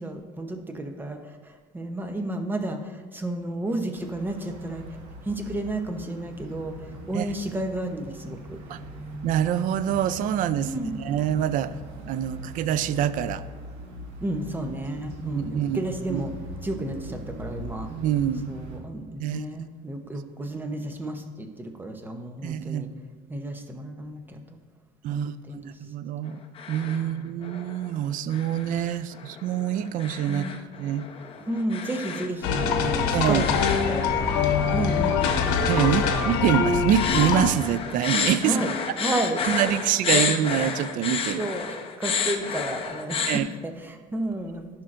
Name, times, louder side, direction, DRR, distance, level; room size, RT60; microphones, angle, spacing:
voice 1, 0.0-4.9 5.2-8.8 10.6-10.9 14.2-16.3 16.6-17.9 18.5-22.9 23.3-24.4 25.1-25.7 27.0-27.4 30.3-30.6 31.5-35.4 35.7-36.3 38.4-39.7 41.4-44.7, right 1 dB, 10° right, 5 dB, 0.8 m, -32 dB
sound 1, 3.9-18.8, equal, 80° right, 1.7 m, -41 dB
voice 2, 9.2-10.7 11.0-11.7 12.1-13.4 15.2-15.8 16.1-16.2 17.9-18.5 19.2-19.4 22.4-22.9 25.0-26.4 26.7-30.4 30.7-31.1 33.1-33.4 35.7-38.6 39.0-39.1 39.4-41.5 43.3-43.5, right 10 dB, 50° right, 15 dB, 0.4 m, -25 dB
sound 2, 26.3-27.1 27.4-27.9 28.3-43.4, left 6 dB, 30° left, 0.8 m, -31 dB
sound 3, 32.4-37.5, left 6 dB, 80° left, 1.0 m, -24 dB
15.0 x 5.7 x 2.5 m, 1.4 s
cardioid pair, 130°, 18 cm